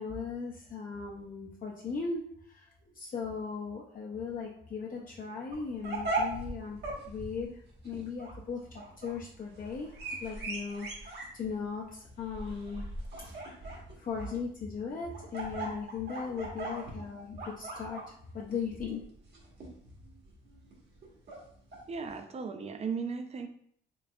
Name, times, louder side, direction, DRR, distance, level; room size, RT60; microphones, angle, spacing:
voice 1, 0.0-6.8 7.1-9.9 10.2-12.9 13.6-19.0, left 5 dB, 45° left, -2 dB, 0.5 m, -38 dB
sound 1, 5.5-22.1, right 2 dB, 60° right, 1.3 m, -40 dB
voice 2, 21.9-23.5, right 5 dB, 35° right, 7 dB, 0.5 m, -36 dB
3.8 x 3.3 x 2.3 m, 0.64 s
cardioid pair, 90°, 20 cm